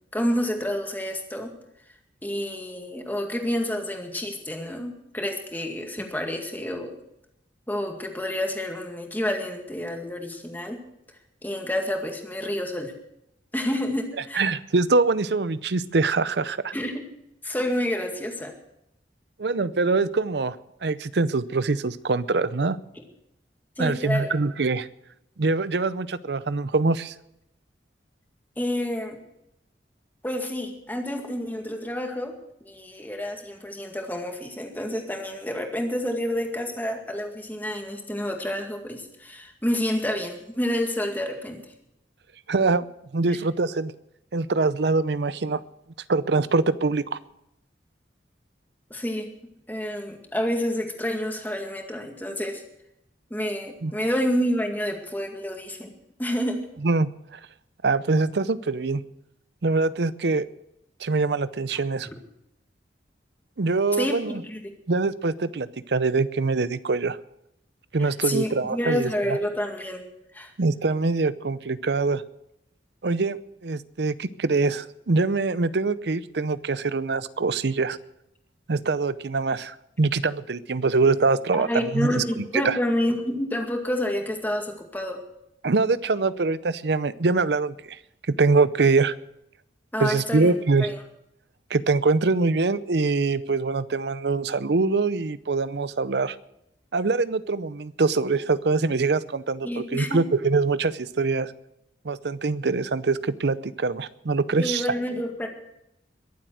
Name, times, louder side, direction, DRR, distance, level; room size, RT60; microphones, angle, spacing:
voice 1, 0.1-1.5 2.2-7.0 7.7-10.8 11.4-12.9 13.5-14.5 16.7-17.0 17.4-18.5 23.0-23.1 23.8-24.3 28.6-29.2 30.2-32.3 32.6-41.6 43.3-43.4 48.9-49.3 49.7-52.6 53.3-55.9 56.2-56.6 64.0-64.6 68.0-70.0 70.3-70.5 81.7-85.2 89.9-90.5 90.8-91.0 99.6-100.3 104.6-105.5, equal, 10° left, 2 dB, 2.0 m, -29 dB
voice 2, 14.3-16.7 19.4-22.8 23.8-24.9 25.4-27.1 42.5-42.9 43.1-43.9 44.3-45.6 46.1-47.2 53.8-53.9 56.8-57.4 57.8-59.0 59.6-60.5 61.0-62.1 63.6-64.4 64.9-67.2 67.9-69.4 70.6-72.2 73.0-73.4 73.6-78.0 78.7-82.8 85.6-88.0 88.3-89.1 90.0-90.9 91.7-96.4 96.9-101.5 102.0-104.9, right 3 dB, 65° right, 16 dB, 0.6 m, -24 dB
22.5 x 7.8 x 6.3 m, 0.81 s
head